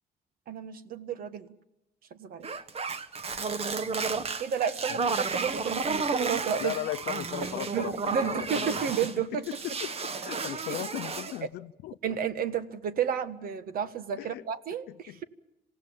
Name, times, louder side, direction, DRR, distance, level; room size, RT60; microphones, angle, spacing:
voice 1, 0.5-1.6 2.1-2.5 4.4-6.7 7.4-9.5 10.3-10.8 12.0-15.2, right 7 dB, 60° right, 1.5 m, -32 dB
sound 1, 2.4-9.2 9.4-11.4, right 4 dB, 35° right, 1.3 m, -32 dB
voice 2, 6.6-8.8 9.2-9.3 9.6-12.1 14.2-14.4 14.9-15.2, left 16 dB, 75° left, 0.7 m, -37 dB
27.0 x 17.0 x 7.3 m
cardioid pair, 110°, 17 cm